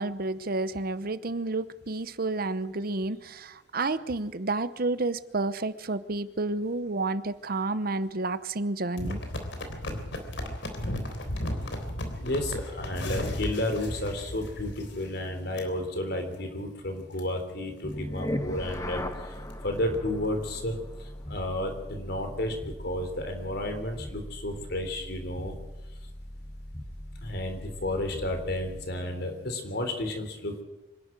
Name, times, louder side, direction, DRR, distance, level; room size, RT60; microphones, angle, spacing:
voice 1, 0.0-9.2, right 2 dB, 55° right, 14 dB, 0.9 m, -30 dB
sound 1, 9.0-15.2 15.6-15.7 16.2-16.4 16.8-16.9 17.1-17.2 17.8-18.0 18.4-18.5 18.7-18.8 19.1-20.0 20.6-20.7, left 1 dB, 75° left, 3.5 m, -35 dB
voice 2, 12.2-19.4 19.6-22.6 22.8-25.6 27.2-30.6, left 1 dB, 60° left, 6 dB, 3.7 m, -32 dB
sound 2, 17.8-29.0, left 1 dB, 20° left, 1.3 m, -39 dB
25.5 x 11.5 x 9.0 m, 1.1 s
head